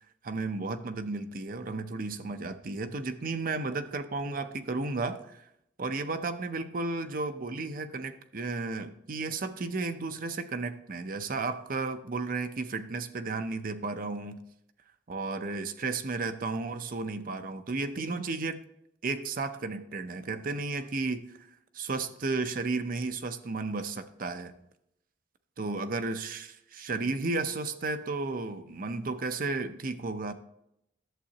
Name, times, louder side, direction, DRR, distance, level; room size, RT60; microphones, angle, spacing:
voice 1, 0.2-5.4 5.8-14.4 15.1-18.6 19.0-21.2 21.7-24.5 25.6-30.3, right 3 dB, 55° right, 9 dB, 0.6 m, -33 dB
11.5 x 7.4 x 2.9 m, 0.78 s
head